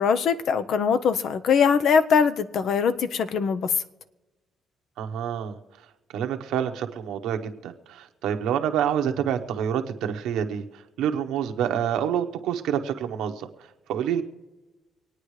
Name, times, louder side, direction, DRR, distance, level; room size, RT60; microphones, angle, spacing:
voice 1, 0.0-3.7, left 6 dB, 70° left, 12 dB, 0.8 m, -22 dB
voice 2, 5.0-5.6 6.1-10.6 11.0-13.5 13.9-14.2, right 9 dB, 90° right, 6 dB, 1.1 m, -27 dB
25.5 x 9.2 x 3.3 m, 1.2 s
cardioid pair, 90°, 0 cm